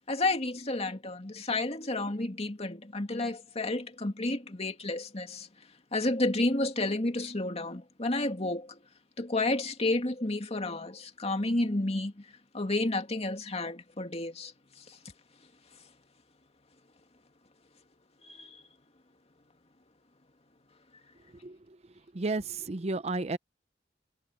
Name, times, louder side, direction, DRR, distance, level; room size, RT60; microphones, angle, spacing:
voice 1, 0.1-5.5 5.9-8.8 9.2-12.3 12.5-14.5 14.8-15.0 18.2-18.6, left 2 dB, 35° left, 2.3 m, -31 dB
voice 2, 21.4-21.8 22.1-23.4, right 3 dB, 35° right, 0.6 m, -32 dB
head